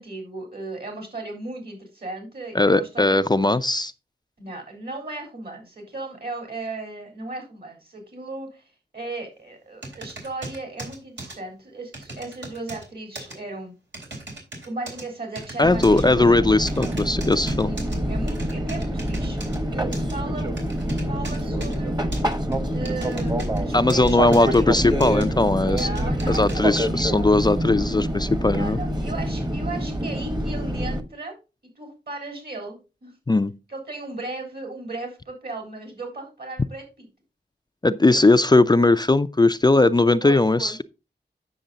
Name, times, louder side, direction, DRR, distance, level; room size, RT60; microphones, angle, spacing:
voice 1, 0.0-3.2 4.4-13.7 14.6-16.2 17.7-19.4 19.7-20.8 21.1-21.9 22.7-24.7 25.8-27.3 27.7-27.8 28.5-31.4 31.8-33.1 33.7-37.1 38.0-38.2 40.2-40.8, right 2 dB, 60° right, 3.8 m, -36 dB
voice 2, 2.5-3.9 15.6-17.7 23.7-25.9 26.3-28.8 33.3-33.5 37.8-40.8, left 2 dB, 25° left, 0.4 m, -19 dB
sound 1, 9.8-11.4 11.9-12.9 13.1-13.3 13.9-15.0 15.3-16.0 16.7-18.0 18.3-19.6 19.9-20.1 20.6-21.8 22.1-23.6 23.9-24.6 25.0-25.2 25.8-26.6, right 2 dB, 80° right, 3.7 m, -37 dB
Fixed-wing aircraft airplane, 15.6-31.0, right 1 dB, 20° right, 1.2 m, -26 dB
8.9 x 6.4 x 3.9 m
wide cardioid pair, 70°, 18 cm